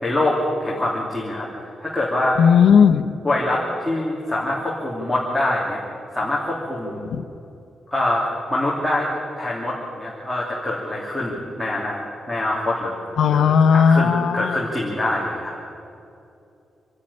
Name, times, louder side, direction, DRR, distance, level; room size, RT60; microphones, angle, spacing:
voice 1, 0.0-1.5 1.8-2.4 3.2-5.8 6.1-7.0 7.9-9.1 9.4-15.6, left 1 dB, 5° left, -6 dB, 2.7 m, -24 dB
voice 2, 2.4-3.0 7.0-7.2 13.2-14.6, left 7 dB, 80° left, 8 dB, 0.9 m, -15 dB
27.5 x 9.7 x 9.9 m, 2.7 s
wide cardioid pair, 175°, 0 cm